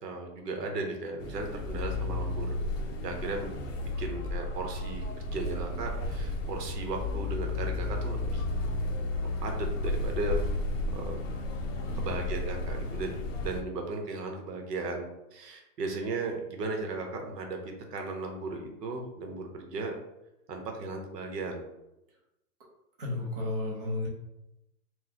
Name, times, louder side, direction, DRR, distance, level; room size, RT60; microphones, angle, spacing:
voice 1, 0.0-2.6 3.0-3.6 4.0-8.4 9.4-10.5 10.9-11.2 11.9-20.0 20.5-21.6, right 3 dB, 85° right, 3 dB, 0.9 m, -36 dB
sound 1, 1.2-13.6, left 2 dB, 55° left, 0.5 m, -33 dB
voice 2, 11.8-12.2 23.0-24.1, left 2 dB, 35° right, -4 dB, 0.7 m, -33 dB
4.0 x 2.2 x 2.8 m, 0.92 s
hypercardioid pair, 180°, 47 cm